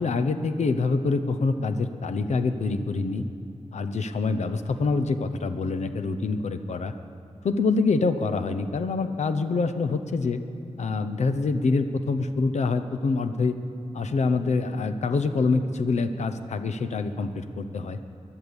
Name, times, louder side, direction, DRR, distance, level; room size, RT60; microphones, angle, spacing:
voice 1, 0.0-3.2 3.7-6.9 7.4-10.4 10.8-13.6 13.9-18.0, left 4 dB, 80° left, 8 dB, 0.7 m, -25 dB
14.5 x 11.0 x 7.1 m, 2.8 s
wide cardioid pair, 80°, 11 cm